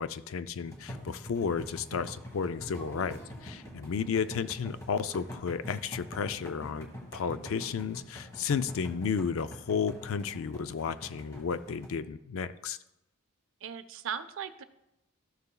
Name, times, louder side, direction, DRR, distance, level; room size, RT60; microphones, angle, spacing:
voice 1, 0.0-12.8, left 6 dB, 75° left, 13 dB, 0.4 m, -33 dB
sound 1, 0.6-11.9, equal, 15° left, 1.5 m, -45 dB
voice 2, 13.6-14.6, right 8 dB, 70° right, 11 dB, 0.5 m, -37 dB
13.0 x 6.6 x 2.3 m, 0.85 s
head